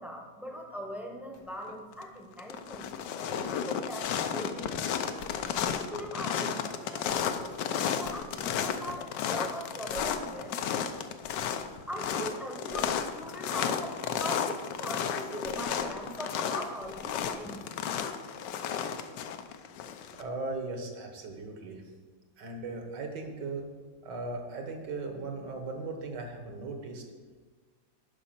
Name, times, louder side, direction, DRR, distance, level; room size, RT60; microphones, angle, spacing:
voice 1, 0.0-3.0 3.5-5.0 5.7-10.6 11.9-17.6, equal, ahead, 1 dB, 0.8 m, -41 dB
sound 1, 1.7-2.0 2.3-20.2, left 8 dB, 70° left, 1.2 m, -33 dB
voice 2, 20.2-21.8 22.4-23.7 24.0-27.0, right 3 dB, 65° right, 4 dB, 1.8 m, -38 dB
10.5 x 5.5 x 5.8 m, 1.4 s
omnidirectional pair, 2.1 m